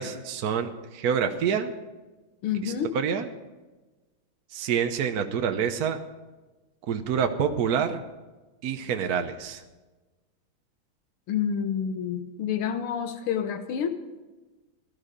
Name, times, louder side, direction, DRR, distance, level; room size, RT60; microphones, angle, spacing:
voice 1, 0.0-1.7 2.6-3.3 4.5-6.0 6.9-8.0 8.6-9.6, right 7 dB, 55° right, 6 dB, 1.1 m, -27 dB
voice 2, 2.4-2.9 11.3-13.9, left 8 dB, 85° left, 8 dB, 1.8 m, -28 dB
17.5 x 12.5 x 5.2 m, 1.2 s
omnidirectional pair, 2.4 m